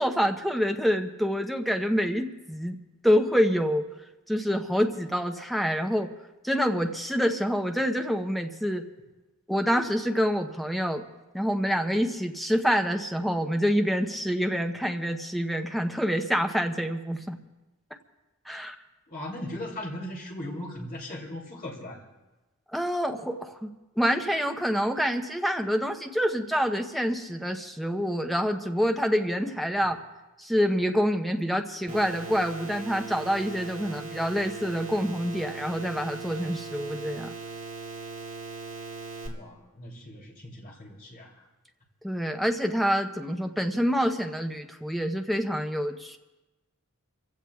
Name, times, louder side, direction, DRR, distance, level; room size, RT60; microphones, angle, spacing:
voice 1, 0.0-2.8 3.0-3.9 4.3-6.1 6.4-8.9 9.5-11.0 11.3-17.4 18.5-18.8 22.7-30.0 30.4-37.3 42.0-46.2, equal, ahead, 5 dB, 0.8 m, -27 dB
voice 2, 19.1-22.0 39.3-41.4, left 1 dB, 45° left, -2 dB, 3.0 m, -38 dB
sound 1, 31.9-39.3, right 3 dB, 35° right, 2.7 m, -39 dB
28.5 x 16.0 x 2.3 m, 1.1 s
head